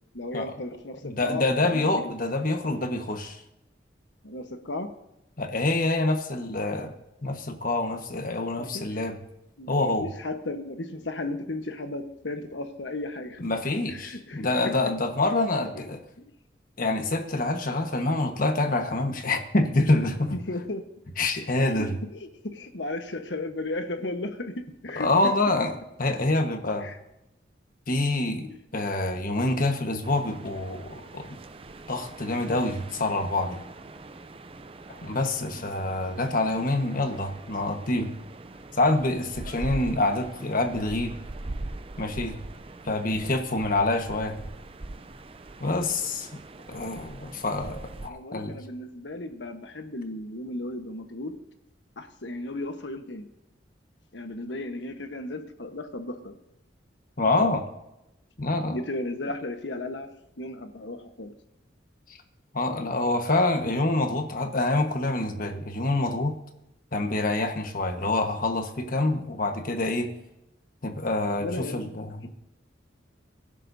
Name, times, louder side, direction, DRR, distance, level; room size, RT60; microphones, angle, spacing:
voice 1, 0.1-2.1 4.2-4.9 8.6-9.0 9.6-13.4 13.9-14.8 15.7-16.3 20.5-20.8 21.6-25.3 26.8-27.0 28.5-28.6 35.4-35.7 39.4-39.5 48.0-51.3 52.0-53.3 54.1-56.4 58.7-60.1 60.4-61.3 71.4-72.0, left 2 dB, 75° left, 7 dB, 1.3 m, -35 dB
voice 2, 1.0-3.4 5.4-6.9 7.2-9.2 9.7-10.1 13.4-16.0 16.8-20.3 21.2-21.9 25.0-26.9 27.9-31.4 31.9-33.6 35.0-38.1 38.7-41.2 42.0-42.4 42.8-44.4 45.6-46.3 46.7-48.6 57.2-57.6 58.4-58.8 62.5-66.3 66.9-70.1 70.8-72.3, left 2 dB, 50° left, 5 dB, 1.4 m, -26 dB
sound 1, 30.0-48.1, right 2 dB, 30° right, 0.6 m, -42 dB
24.5 x 11.0 x 2.8 m, 0.89 s
head